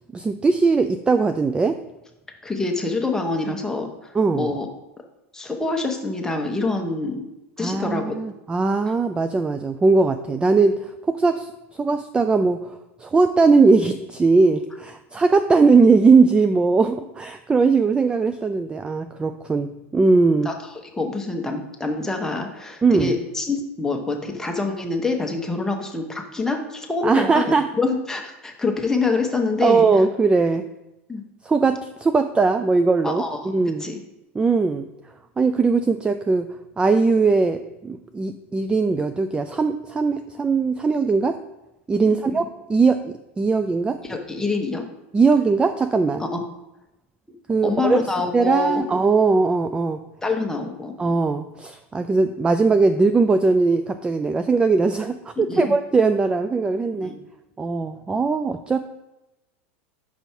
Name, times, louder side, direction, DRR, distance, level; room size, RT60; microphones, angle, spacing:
voice 1, 0.1-1.8 4.1-4.5 7.6-20.5 22.8-23.2 27.0-27.7 29.6-30.7 31.4-33.8 34.4-34.9 35.4-41.4 41.9-44.0 45.1-46.2 47.5-48.1 48.3-50.0 51.0-57.1 57.6-58.8, right 4 dB, 15° right, 9 dB, 0.3 m, -20 dB
voice 2, 2.4-4.7 5.3-7.2 7.6-8.2 20.4-29.8 31.1-31.2 33.0-33.4 33.8-34.0 42.0-42.2 44.0-44.9 46.3-46.4 47.6-48.8 50.2-50.9 55.5-55.7 57.0-57.2, left 3 dB, 10° left, 2 dB, 1.0 m, -26 dB
5.3 x 4.6 x 4.4 m, 0.94 s
hypercardioid pair, 105°, 7 cm